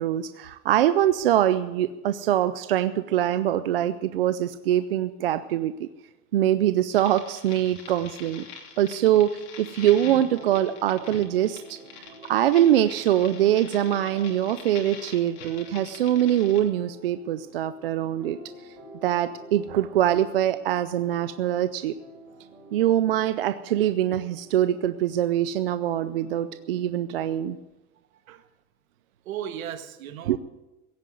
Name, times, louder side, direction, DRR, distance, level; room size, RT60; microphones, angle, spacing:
voice 1, 0.0-5.9 6.3-8.4 8.8-9.3 9.6-11.8 12.3-18.4 19.0-21.9 22.7-27.6 30.3-30.4, right 12 dB, 40° right, 0.4 m, -23 dB
sound 1, 6.9-16.6, left 6 dB, 50° left, 2.9 m, -44 dB
sound 2, 9.9-27.4, right 1 dB, 20° right, 5.3 m, -49 dB
voice 2, 29.2-30.4, right 10 dB, 60° right, 1.5 m, -35 dB
17.0 x 9.2 x 7.7 m
supercardioid pair, 165°, 46 cm